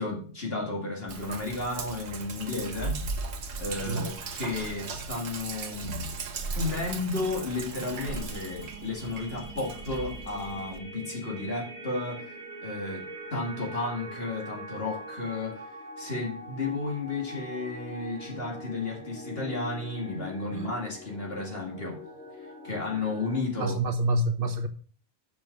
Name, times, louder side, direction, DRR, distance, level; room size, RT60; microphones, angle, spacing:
voice 1, 0.0-3.0 3.6-6.1 6.6-12.3 12.6-22.0 22.4-23.8, left 3 dB, 65° left, 2.2 m, -33 dB
Sink (filling or washing), 1.1-10.8, right 3 dB, 85° right, 1.2 m, -37 dB
sound 1, 5.9-23.4, equal, 10° left, 2.2 m, -44 dB
voice 2, 23.6-24.7, right 1 dB, 60° right, 1.2 m, -27 dB
7.0 x 6.0 x 6.2 m
omnidirectional pair, 1.1 m